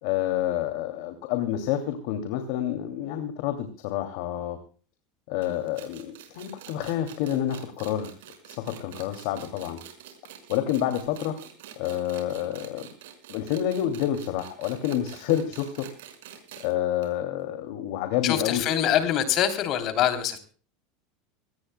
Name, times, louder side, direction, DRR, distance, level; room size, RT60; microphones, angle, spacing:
voice 1, 0.0-4.6 5.3-8.1 8.5-9.8 10.5-11.3 11.8-12.9 13.3-15.9 16.6-18.6, left 11 dB, 60° left, 7 dB, 2.5 m, -28 dB
sound 1, 5.4-16.7 17.0-17.1 17.4-17.5 18.4-18.5, right 10 dB, 85° right, 5.5 m, -47 dB
voice 2, 18.2-20.4, left 10 dB, 40° left, 8 dB, 3.2 m, -24 dB
23.0 x 19.0 x 2.2 m, 0.41 s
supercardioid pair, 155°, 0 cm